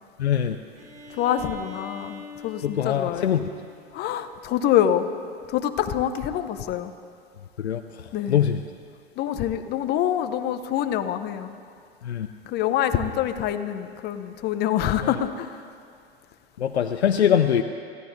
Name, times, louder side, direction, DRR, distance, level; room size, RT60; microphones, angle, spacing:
voice 1, 0.2-0.6 2.6-3.5 7.6-7.8 8.3-8.6 12.0-12.3 15.0-15.1 16.6-17.6, left 9 dB, 80° left, 6 dB, 0.6 m, -22 dB
Bowed string instrument, 0.8-4.5, left 4 dB, 20° right, 1.3 m, -44 dB
voice 2, 1.1-3.4 3.9-5.1 5.5-6.9 8.1-8.4 9.2-11.5 12.5-15.6, left 10 dB, 30° left, 9 dB, 0.8 m, -26 dB
25.0 x 15.0 x 2.7 m, 2.4 s
hypercardioid pair, 100°, 32 cm